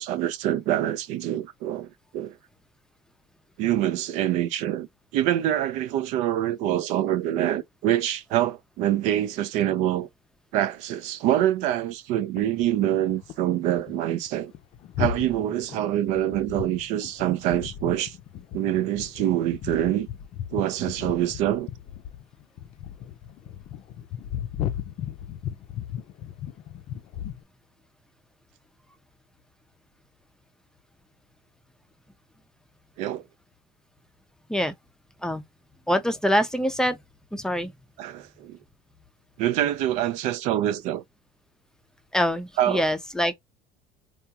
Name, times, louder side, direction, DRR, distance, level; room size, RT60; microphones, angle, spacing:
voice 1, 0.0-2.4 3.6-4.9 5.1-10.1 10.5-14.5 15.0-18.2 18.5-20.1 20.5-21.7 33.0-33.2 38.0-38.6 39.4-41.0 42.6-42.8, right 12 dB, 65° right, 0.5 m, -25 dB
sound 1, 12.4-13.5 13.8-14.0 14.3-27.4, left 10 dB, 50° left, 0.5 m, -36 dB
voice 2, 35.9-37.0 37.3-37.7 42.1-43.3, equal, 5° left, 0.5 m, -24 dB
3.5 x 2.4 x 2.7 m
cardioid pair, 125°, 13 cm